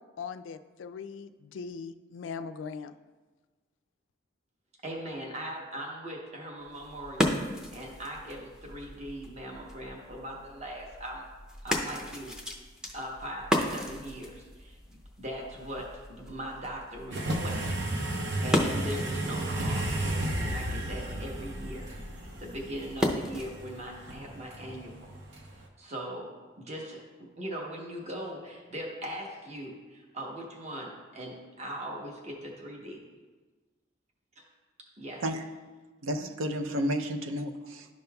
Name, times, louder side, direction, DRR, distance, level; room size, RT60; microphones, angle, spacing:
voice 1, 0.2-2.9, left 5 dB, 70° left, 11 dB, 0.3 m, -40 dB
voice 2, 4.8-11.3 11.6-12.6 12.9-17.7 18.0-25.1 25.8-33.0 35.0-35.2, equal, 35° right, -1 dB, 0.9 m, -40 dB
sound 1, 6.6-23.7, equal, 5° right, 0.5 m, -36 dB
sound 2, 17.1-25.6, right 1 dB, 60° right, 0.8 m, -33 dB
voice 3, 36.0-37.9, equal, 85° right, 6 dB, 0.6 m, -31 dB
11.5 x 5.3 x 2.3 m, 1.3 s
head